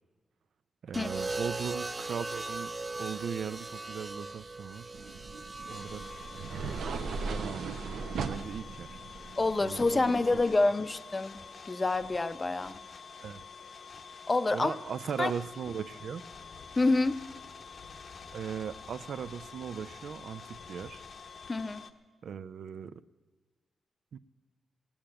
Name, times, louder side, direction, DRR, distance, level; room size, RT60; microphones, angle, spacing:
voice 1, 0.8-2.7 3.0-4.9 5.7-6.0 7.2-8.9 9.6-10.2 13.2-13.4 14.5-16.2 18.3-21.0 22.2-22.9 24.1-24.2, right 7 dB, 75° right, 0.4 m, -38 dB
sound 1, 0.9-9.1 10.3-10.7, right 3 dB, 25° right, 0.6 m, -40 dB
sound 2, 4.9-10.4, right 4 dB, 90° right, 0.9 m, -38 dB
sound 3, 5.7-21.9, left 5 dB, 55° left, 0.9 m, -48 dB
voice 2, 9.4-11.4 11.7-12.8 14.3-14.7 15.2-15.3 16.8-17.2 21.5-21.8, left 2 dB, 25° left, 0.6 m, -27 dB
17.5 x 8.7 x 8.8 m
wide cardioid pair, 110°, 0 cm